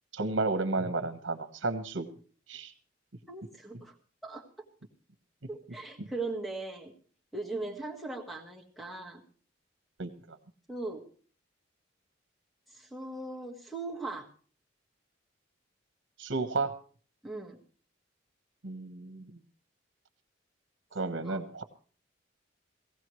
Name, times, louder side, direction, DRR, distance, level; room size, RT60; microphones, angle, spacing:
voice 1, 0.1-2.1 2.5-2.7 6.0-6.1 10.0-10.4 16.2-16.7 18.6-19.4 20.9-21.6, right 3 dB, 75° right, 7 dB, 1.2 m, -32 dB
voice 2, 3.3-3.9 4.2-4.5 5.5-6.9 7.3-9.2 10.7-11.0 12.7-14.3 17.2-17.6 21.3-21.4, right 3 dB, ahead, 4 dB, 1.7 m, -39 dB
18.0 x 15.5 x 3.2 m, 0.43 s
head